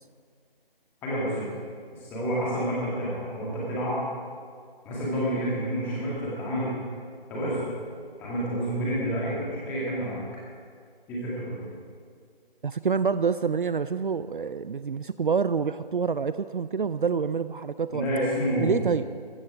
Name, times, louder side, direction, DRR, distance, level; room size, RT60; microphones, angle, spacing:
voice 1, 1.0-1.5 2.0-4.0 4.8-6.7 7.3-7.6 8.2-10.2 11.1-11.6 17.9-18.9, equal, 5° left, -7 dB, 2.0 m, -29 dB
voice 2, 12.6-18.0 18.6-19.1, right 6 dB, 60° right, 13 dB, 0.4 m, -27 dB
14.5 x 14.0 x 4.8 m, 2.1 s
figure-of-eight pair, 160°, 30 cm